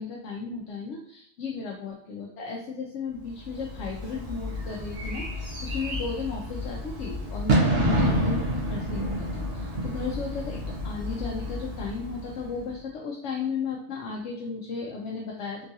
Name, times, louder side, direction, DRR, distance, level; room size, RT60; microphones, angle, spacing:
voice 1, 0.0-8.4 8.7-15.7, left 4 dB, 80° left, -1 dB, 0.9 m, -35 dB
Bird / Fireworks, 3.5-12.7, equal, 60° right, 1.0 m, -29 dB
3.7 x 2.4 x 2.7 m, 0.72 s
omnidirectional pair, 1.2 m